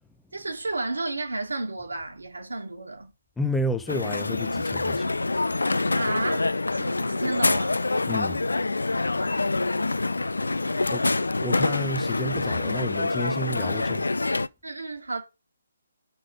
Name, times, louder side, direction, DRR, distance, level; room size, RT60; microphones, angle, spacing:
voice 1, 0.3-3.1 5.9-7.8 9.2-10.4 10.7-10.9 14.6-15.2, right 2 dB, 70° right, 1.8 m, -33 dB
voice 2, 3.4-5.1 8.0-8.4 10.9-11.1 11.4-14.1, left 1 dB, 5° left, 0.6 m, -31 dB
Crowd, 3.9-14.5, left 3 dB, 70° left, 0.5 m, -26 dB
6.5 x 5.6 x 5.0 m
figure-of-eight pair, 140°, 0 cm